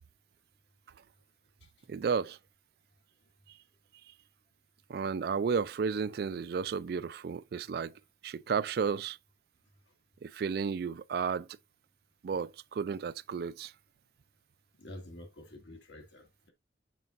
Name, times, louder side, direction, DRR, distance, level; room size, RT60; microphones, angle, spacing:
voice 1, 1.9-2.4 4.9-7.9 8.2-9.2 10.2-11.5 12.2-13.7, right 6 dB, 60° right, 0.3 m, -32 dB
voice 2, 14.8-16.5, left 1 dB, 85° left, 1.9 m, -48 dB
7.4 x 5.3 x 2.5 m
head